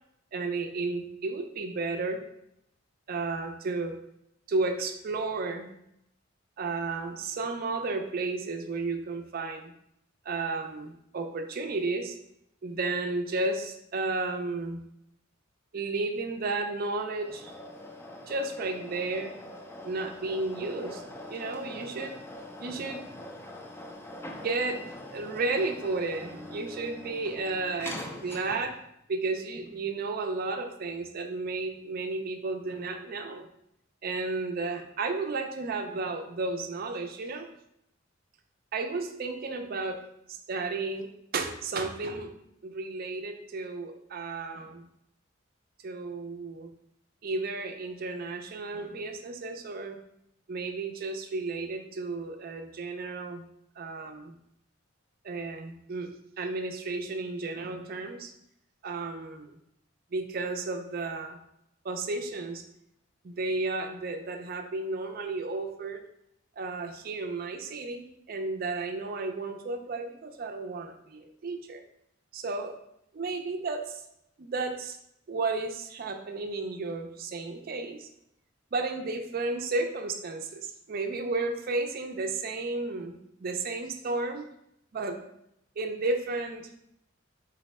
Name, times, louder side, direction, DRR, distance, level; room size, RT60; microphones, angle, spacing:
voice 1, 0.3-2.2 3.1-4.0 4.5-5.7 6.6-9.7 10.3-12.2 12.6-14.8 15.7-17.5 18.3-19.3 19.8-21.0 21.3-22.2 22.6-23.1 24.4-24.8 25.1-28.8 29.1-33.5 34.0-37.5 38.7-40.0 40.3-42.3 42.6-44.9 45.8-46.7 47.2-50.0 50.5-53.4 53.8-54.3 55.2-56.1 56.4-58.3 58.8-59.5 60.1-61.4 61.8-62.6 63.2-66.0 66.6-71.8 72.3-72.7 73.1-74.0 74.4-75.0 75.3-78.1 78.7-84.5 84.9-85.2 85.8-86.7, right 3 dB, 50° right, 6 dB, 0.4 m, -33 dB
sound 1, 17.1-28.8, left 1 dB, 10° left, 0.4 m, -43 dB
4.0 x 2.1 x 4.1 m, 0.77 s
head